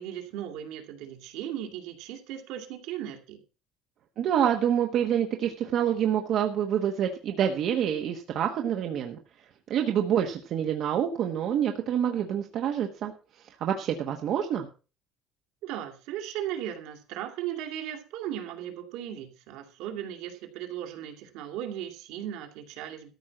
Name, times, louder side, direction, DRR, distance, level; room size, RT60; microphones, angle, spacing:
voice 1, 0.0-3.4 15.6-23.1, right 11 dB, 75° right, 4 dB, 2.6 m, -37 dB
voice 2, 4.2-9.2 9.7-13.1 13.6-14.7, right 9 dB, 45° right, 4 dB, 1.1 m, -27 dB
13.5 x 5.4 x 7.6 m, 0.35 s
cardioid pair, 180°, 0 cm